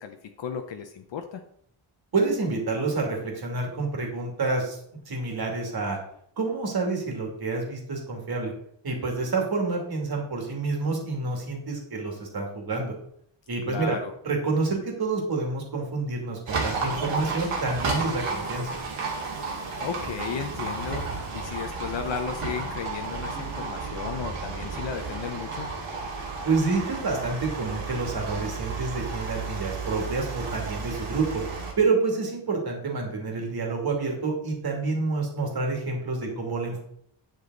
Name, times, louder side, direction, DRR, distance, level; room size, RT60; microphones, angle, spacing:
voice 1, 0.0-1.4 13.6-14.1 19.8-25.7, left 6 dB, 65° left, 5 dB, 0.9 m, -34 dB
voice 2, 2.1-4.8 5.1-6.0 6.4-8.5 8.8-12.9 13.5-14.0 14.2-18.8 26.4-31.4 31.8-36.8, right 3 dB, 50° right, 1 dB, 2.6 m, -28 dB
Livestock farm animals working animals, 16.5-31.7, right 4 dB, 85° right, 2.7 m, -32 dB
9.8 x 7.3 x 3.9 m, 0.68 s
wide cardioid pair, 165°, 48 cm